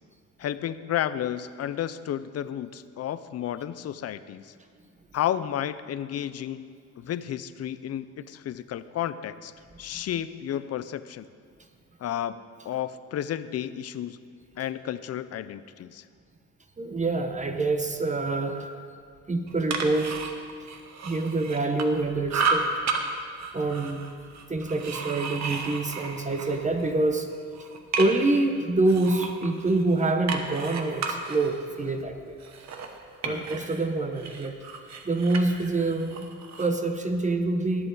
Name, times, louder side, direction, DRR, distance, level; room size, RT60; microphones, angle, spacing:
voice 1, 0.4-4.5 5.1-9.5 9.8-11.3 12.0-12.4 12.6-14.2 14.6-16.0 33.2-33.5, left 10 dB, 55° left, 13 dB, 0.6 m, -32 dB
voice 2, 16.8-18.8 19.3-20.3 21.0-22.6 23.5-24.0 24.5-27.3 28.0-32.4 33.2-34.6 35.0-37.9, right 2 dB, 25° right, 6 dB, 0.9 m, -26 dB
sound 1, 19.5-22.0 22.3-23.0 23.4-26.9 27.3-28.4 28.9-33.8 34.2-36.8, right 5 dB, 65° right, 1.2 m, -33 dB
20.0 x 7.9 x 4.0 m, 2.2 s
cardioid pair, 90°, 30 cm